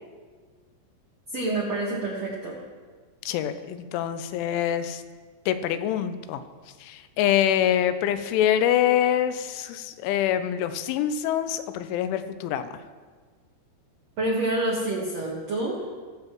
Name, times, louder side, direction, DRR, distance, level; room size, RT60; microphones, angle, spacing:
voice 1, 1.3-2.6 14.2-15.9, right 2 dB, 90° right, -3 dB, 1.4 m, -27 dB
voice 2, 3.3-5.0 5.5-6.4 6.8-12.7, left 10 dB, 85° left, 10 dB, 3.0 m, -25 dB
22.5 x 7.6 x 3.0 m, 1.5 s
omnidirectional pair, 5.5 m